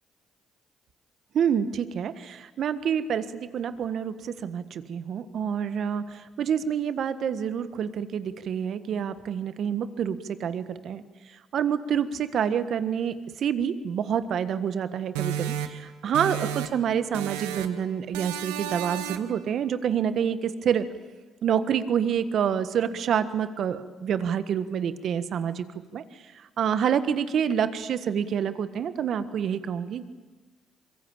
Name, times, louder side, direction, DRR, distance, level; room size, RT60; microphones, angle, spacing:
voice 1, 1.3-11.0 11.5-20.8 21.4-25.6 25.9-26.0 26.6-30.0, right 8 dB, 65° right, 12 dB, 1.5 m, -27 dB
sound 1, 15.2-16.9 17.1-17.8 18.1-19.4, right 10 dB, 90° right, 1.1 m, -32 dB
24.5 x 22.5 x 8.9 m, 1.3 s
supercardioid pair, 60°, 0 cm